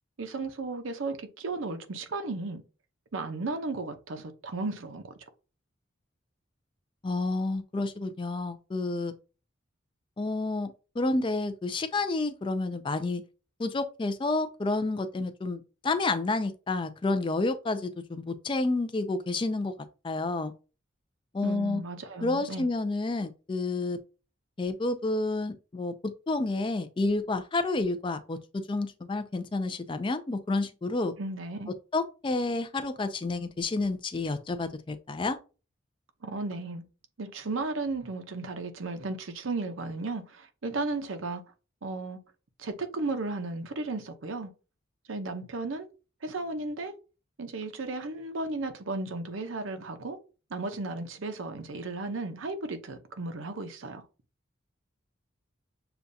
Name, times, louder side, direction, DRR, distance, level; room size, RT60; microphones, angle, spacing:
voice 1, 0.2-2.6 3.1-5.1 21.4-22.7 31.2-31.7 36.2-36.8 37.2-41.4 41.8-42.2 42.6-44.5 45.1-45.9 46.2-46.9 47.4-50.2 50.5-54.0, right 3 dB, 80° right, 0.7 m, -34 dB
voice 2, 7.0-9.1 10.2-13.2 13.6-19.7 20.0-20.5 21.3-21.8 22.2-24.0 24.6-31.1 31.9-35.4, left 2 dB, 25° left, 0.4 m, -30 dB
6.8 x 2.3 x 2.6 m
head